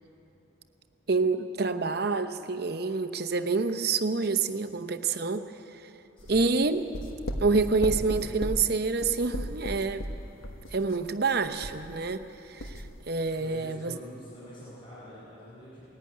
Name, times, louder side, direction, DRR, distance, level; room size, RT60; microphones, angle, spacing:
voice 1, 1.1-5.4 6.3-6.8 7.4-10.0 10.7-13.9, right 4 dB, 50° right, 10 dB, 0.8 m, -27 dB
sound 1, 6.2-12.3 12.6-13.0, equal, 85° left, 1.4 m, -36 dB
voice 2, 6.2-6.5 13.4-15.9, left 1 dB, 25° left, -9 dB, 5.7 m, -46 dB
19.0 x 14.5 x 9.5 m, 2.9 s
head